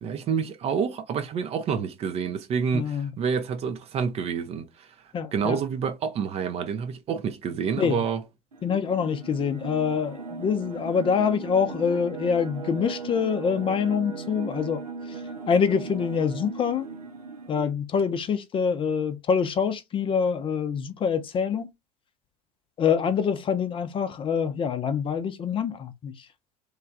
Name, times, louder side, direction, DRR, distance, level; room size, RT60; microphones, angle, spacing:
voice 1, 0.0-4.9 5.3-8.2, right 6 dB, 35° right, 0.5 m, -28 dB
voice 2, 2.7-3.1 5.1-5.6 7.8-8.0 8.6-14.8 15.5-16.9 17.5-21.7 22.8-26.1, left 6 dB, 25° left, 0.5 m, -25 dB
sound 1, 8.5-17.7, right 4 dB, 85° right, 0.4 m, -38 dB
3.1 x 2.3 x 3.5 m
figure-of-eight pair, 70°, 19 cm